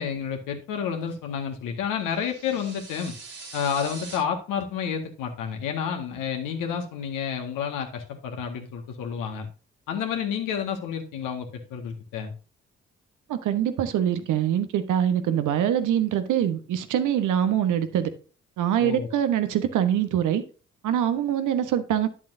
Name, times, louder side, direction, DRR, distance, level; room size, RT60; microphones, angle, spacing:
voice 1, 0.0-3.1 3.5-9.5 9.9-12.3 18.8-19.2, left 7 dB, 70° left, 1.9 m, -30 dB
sound 1, 2.1-4.2, right 4 dB, 90° right, 2.7 m, -42 dB
voice 2, 13.3-18.1 18.6-20.4 20.8-22.1, right 10 dB, 65° right, 1.2 m, -24 dB
11.0 x 7.1 x 2.7 m
hypercardioid pair, 40°, 33 cm